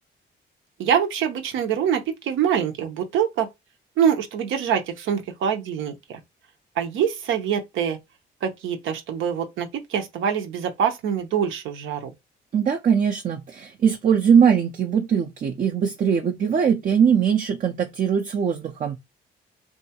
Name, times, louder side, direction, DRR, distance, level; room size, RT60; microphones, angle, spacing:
voice 1, 0.8-3.5 4.0-6.2 6.8-8.0 8.4-12.1, right 8 dB, 80° right, 0.6 m, -24 dB
voice 2, 12.5-19.0, right 7 dB, 40° right, 0.4 m, -21 dB
2.7 x 2.3 x 2.8 m
cardioid pair, 90°, 20 cm